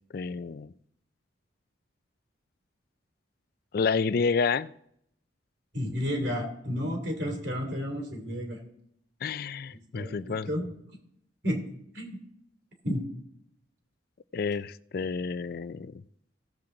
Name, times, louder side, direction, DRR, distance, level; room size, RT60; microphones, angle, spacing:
voice 1, 0.1-0.7 3.7-4.7 9.2-10.5 14.3-15.9, left 5 dB, 50° left, 0.4 m, -29 dB
voice 2, 5.7-8.6 9.9-10.7 11.4-11.6 11.9-12.2 12.8-13.0, equal, 65° right, 3.0 m, -31 dB
16.5 x 7.3 x 3.8 m
head